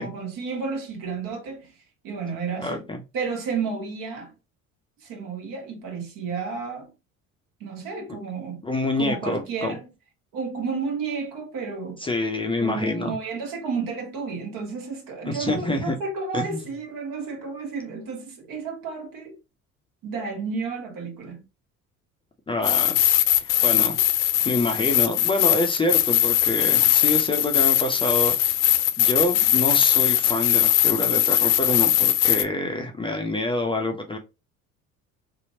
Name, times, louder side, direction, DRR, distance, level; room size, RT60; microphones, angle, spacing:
voice 1, 0.0-1.7 2.0-2.9 3.1-4.3 5.0-6.9 7.6-8.6 9.0-9.9 10.3-12.0 12.6-19.4 20.0-21.4, right 5 dB, 50° right, 1.5 m, -32 dB
voice 2, 2.6-3.0 8.6-9.8 12.0-13.1 15.2-16.0 16.3-16.6 22.5-28.3 29.0-34.2, left 2 dB, 15° left, 0.5 m, -27 dB
sound 1, 22.6-32.4, left 13 dB, 60° left, 0.5 m, -20 dB
2.8 x 2.6 x 2.7 m
figure-of-eight pair, 55°, 42 cm